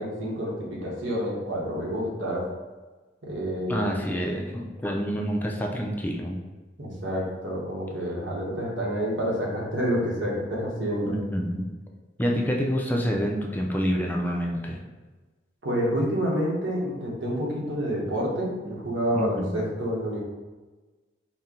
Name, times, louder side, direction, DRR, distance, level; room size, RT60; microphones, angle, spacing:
voice 1, 0.0-2.4 3.2-3.9 6.8-11.1 15.6-20.2, equal, 85° right, -3 dB, 1.1 m, -28 dB
voice 2, 3.7-6.4 11.0-11.7 12.2-14.8 19.1-19.6, equal, 10° left, 0 dB, 0.4 m, -27 dB
4.2 x 2.2 x 3.7 m, 1.2 s
head